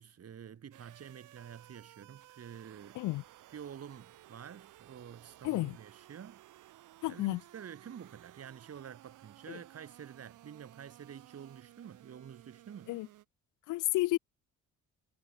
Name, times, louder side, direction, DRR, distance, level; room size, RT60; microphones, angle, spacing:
voice 1, 0.0-3.1 3.5-6.4 7.1-13.0, right 8 dB, 55° right, 4.3 m, -49 dB
sound 1, 0.7-13.2, right 15 dB, 85° right, 6.7 m, -57 dB
voice 2, 5.4-5.8 7.0-7.4 9.5-9.6 12.9-13.1 13.7-14.2, left 19 dB, 85° left, 0.5 m, -31 dB
cardioid pair, 90°, 30 cm